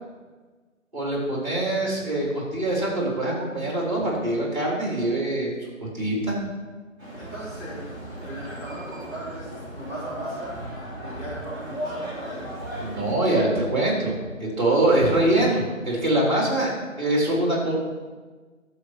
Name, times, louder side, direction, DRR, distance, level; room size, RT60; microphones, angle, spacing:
voice 1, 0.9-5.5 5.8-6.4 12.8-16.7 17.0-17.7, right 1 dB, 35° right, -3 dB, 3.7 m, -23 dB
sound 1, 7.0-13.1, equal, 15° right, 3.3 m, -36 dB
voice 2, 7.2-7.9 8.2-10.5 11.0-12.4, right 1 dB, 15° left, -14 dB, 3.9 m, -37 dB
11.5 x 7.5 x 4.7 m, 1.4 s
figure-of-eight pair, 170°, 41 cm